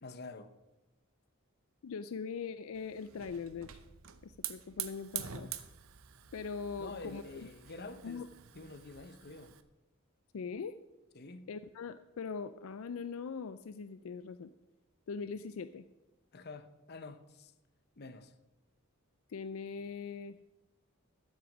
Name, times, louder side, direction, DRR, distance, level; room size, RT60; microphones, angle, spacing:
voice 1, 0.0-0.5 6.8-8.3 8.5-9.6 11.1-11.5 16.3-17.5 18.0-18.3, left 3 dB, 45° left, 0.8 m, -47 dB
voice 2, 1.8-3.8 4.2-5.5 6.3-7.5 8.0-8.3 10.3-10.7 11.5-14.5 15.1-15.8 19.3-20.4, left 5 dB, 75° left, 0.4 m, -41 dB
Hiss / Fire, 2.8-9.6, right 11 dB, 70° right, 0.8 m, -46 dB
13.0 x 7.7 x 6.2 m
head